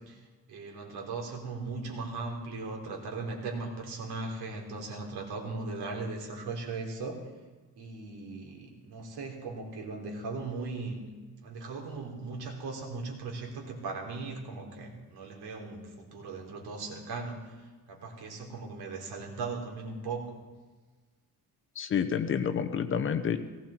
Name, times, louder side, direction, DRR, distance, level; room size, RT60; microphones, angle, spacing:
voice 1, 0.1-7.3 7.8-11.0 11.4-20.4, right 3 dB, 70° right, 0 dB, 3.7 m, -38 dB
voice 2, 21.8-23.4, left 7 dB, 30° left, 8 dB, 0.8 m, -29 dB
18.5 x 16.0 x 4.4 m, 1.3 s
cardioid pair, 165°, 39 cm